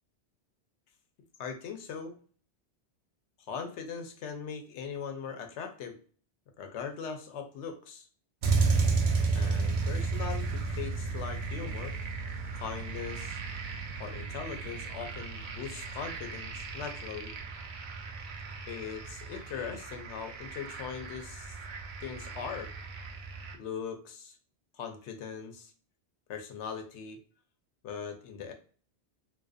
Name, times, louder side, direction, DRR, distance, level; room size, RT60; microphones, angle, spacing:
voice 1, 1.4-2.2 3.5-6.0 6.6-8.1 9.3-11.9 12.5-13.4 14.0-17.3 18.7-21.6 22.0-22.7 23.5-24.4 24.8-25.7 26.3-27.2 27.8-28.5, left 6 dB, 80° left, 6 dB, 0.9 m, -40 dB
sound 1, 8.4-23.5, right 4 dB, 60° right, 0.5 m, -33 dB
2.5 x 2.2 x 2.4 m, 0.42 s
omnidirectional pair, 1.2 m